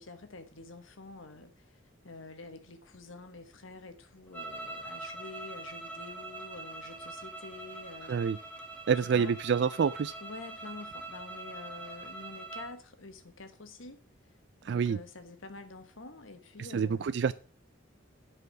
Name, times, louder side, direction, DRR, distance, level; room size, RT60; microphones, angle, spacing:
voice 1, 0.0-8.2 8.6-8.7 9.0-9.3 10.2-14.0 14.6-17.1, left 3 dB, 85° left, 1.3 m, -47 dB
sound 1, 4.3-12.7, right 2 dB, 5° left, 1.6 m, -43 dB
voice 2, 8.9-10.1 14.6-15.0 16.7-17.3, right 6 dB, 60° right, 0.3 m, -27 dB
8.0 x 4.9 x 7.4 m
head